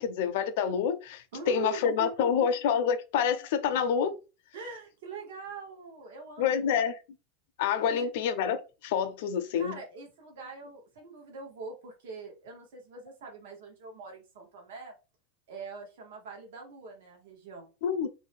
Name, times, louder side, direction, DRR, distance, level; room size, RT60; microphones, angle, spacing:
voice 1, 0.0-4.1 6.4-7.0 7.6-9.8 17.8-18.1, left 7 dB, 60° left, 0.4 m, -27 dB
voice 2, 1.3-2.5 4.5-6.8 7.8-8.1 9.6-14.9 15.5-17.7, right 5 dB, 75° right, 0.9 m, -43 dB
2.6 x 2.1 x 3.3 m
supercardioid pair, 170°, 0 cm